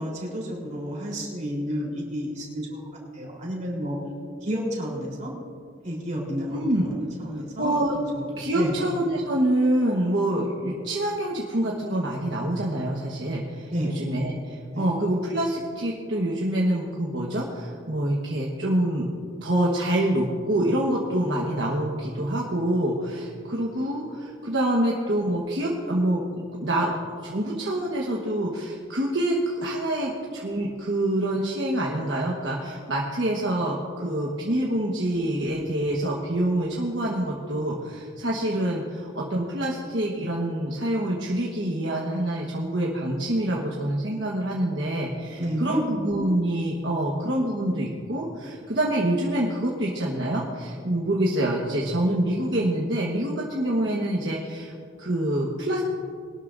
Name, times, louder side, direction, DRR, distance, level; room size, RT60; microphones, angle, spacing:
voice 1, 0.0-4.0 4.4-5.3 5.8-7.7 8.1-8.3 8.5-8.7 13.7-13.9 14.7-14.9 45.4-45.8, equal, 40° right, -3 dB, 3.8 m, -31 dB
voice 2, 6.5-6.8 7.6-8.0 8.4-19.1 19.4-26.2 26.6-26.9 27.2-54.7 55.0-55.8, right 1 dB, 60° right, -3 dB, 1.4 m, -26 dB
21.5 x 12.5 x 2.6 m, 2.3 s
head